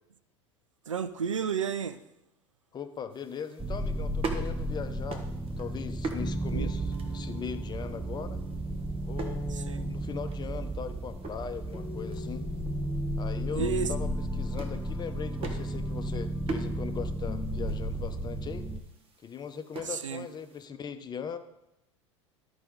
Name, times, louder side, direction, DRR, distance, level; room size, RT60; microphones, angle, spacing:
voice 1, 0.9-2.0 6.5-6.7 9.5-9.9 13.5-13.9 20.0-20.3, right 7 dB, 85° right, 13 dB, 0.5 m, -31 dB
voice 2, 2.7-5.2 5.6-8.4 9.0-12.5 13.2-18.7 19.2-21.4, left 7 dB, 25° left, 10 dB, 0.8 m, -39 dB
sound 1, 3.1-20.7, right 4 dB, 35° right, 1.4 m, -44 dB
sound 2, 3.6-18.8, right 1 dB, 5° right, 0.7 m, -33 dB
13.0 x 4.9 x 4.0 m, 0.89 s
hypercardioid pair, 80°, 16 cm